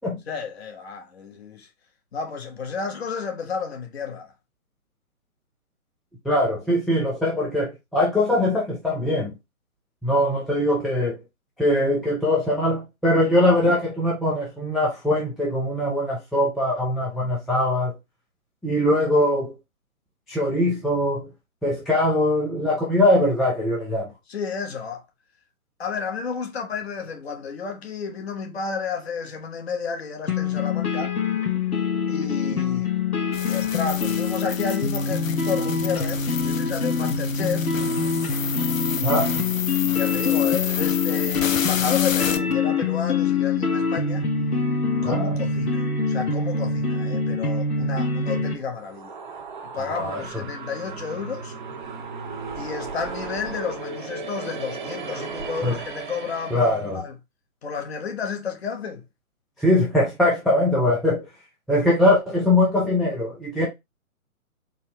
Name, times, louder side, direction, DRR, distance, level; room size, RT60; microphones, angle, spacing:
voice 1, 0.3-1.7 2.1-4.3 17.2-17.3 24.3-25.0 25.8-31.1 32.1-32.9 33.4-37.7 38.9-44.3 45.0-49.1 49.7-51.5 52.5-57.1 57.6-59.0, left 5 dB, 45° left, 1.2 m, -31 dB
voice 2, 6.2-9.3 10.0-11.2 11.6-17.9 18.6-19.5 20.3-21.3 21.6-24.1 39.0-39.3 45.0-45.4 49.8-50.4 55.6-55.8 56.5-57.0 59.6-61.3 61.7-63.7, left 1 dB, ahead, 0.3 m, -22 dB
sound 1, 30.3-48.5, left 5 dB, 85° left, 1.5 m, -24 dB
sound 2, 33.3-42.5, left 7 dB, 65° left, 0.7 m, -31 dB
sound 3, 48.6-56.9, right 4 dB, 35° right, 0.6 m, -35 dB
4.1 x 3.6 x 3.1 m
figure-of-eight pair, 140°, 43 cm